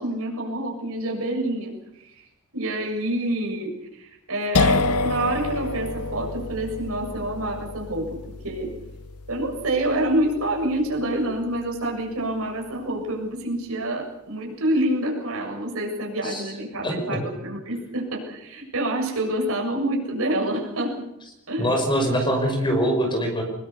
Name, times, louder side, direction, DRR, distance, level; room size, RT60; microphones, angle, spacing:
voice 1, 0.0-1.7 2.0-2.3 2.5-8.2 8.4-8.7 9.3-21.1 21.5-21.7, right 1 dB, 70° right, 0 dB, 7.2 m, -27 dB
sound 1, 4.5-12.1, left 3 dB, 90° left, 0.9 m, -28 dB
voice 2, 16.8-17.2 21.6-23.4, equal, 20° left, 4 dB, 5.7 m, -23 dB
24.0 x 21.5 x 6.9 m, 0.85 s
head